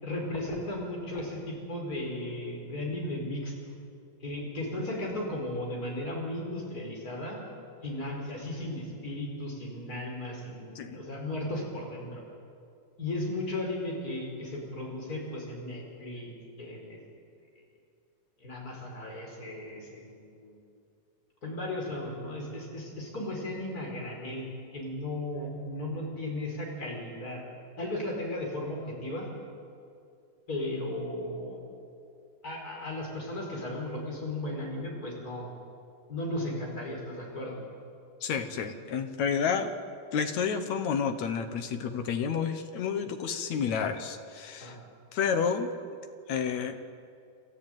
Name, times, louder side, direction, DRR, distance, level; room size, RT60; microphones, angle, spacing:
voice 1, 0.0-3.5 4.2-7.4 7.8-12.2 13.0-16.3 16.6-17.0 18.4-20.6 21.4-24.5 24.7-27.4 27.8-29.3 30.5-31.6 32.4-35.5 36.1-37.6 44.6-44.8, left 1 dB, 25° left, -1 dB, 5.1 m, -35 dB
voice 2, 38.2-39.7 40.1-44.8 45.1-45.7 46.3-46.8, left 6 dB, 65° left, 7 dB, 2.1 m, -30 dB
29.5 x 14.0 x 9.2 m, 2.4 s
omnidirectional pair, 4.2 m